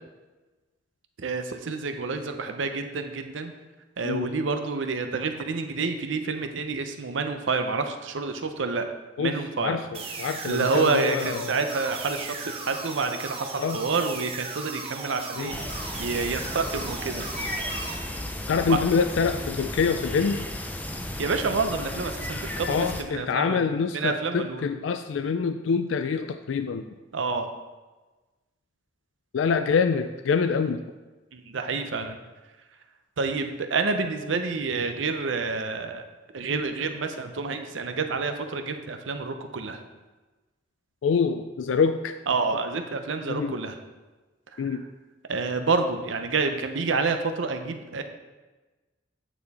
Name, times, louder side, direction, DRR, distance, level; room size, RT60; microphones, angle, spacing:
voice 1, 1.2-3.5 4.0-8.8 9.2-9.8 10.4-15.5 16.0-17.3 18.7-18.8 21.2-23.7 23.9-24.7 27.1-27.5 31.3-32.2 33.2-36.0 36.3-39.8 42.3-43.7 44.5-44.6 45.3-48.0, right 4 dB, 80° right, 7 dB, 0.7 m, -28 dB
voice 2, 9.2-11.5 13.6-13.8 15.4-15.6 18.5-20.5 22.7-26.9 29.3-30.8 41.0-42.1 43.3-43.6 44.6-44.8, left 5 dB, 80° left, 8 dB, 0.3 m, -26 dB
sound 1, 9.9-17.9, right 4 dB, 30° right, 0.8 m, -37 dB
sound 2, 15.5-23.0, left 1 dB, 10° left, 0.5 m, -34 dB
9.0 x 4.3 x 4.1 m, 1.2 s
head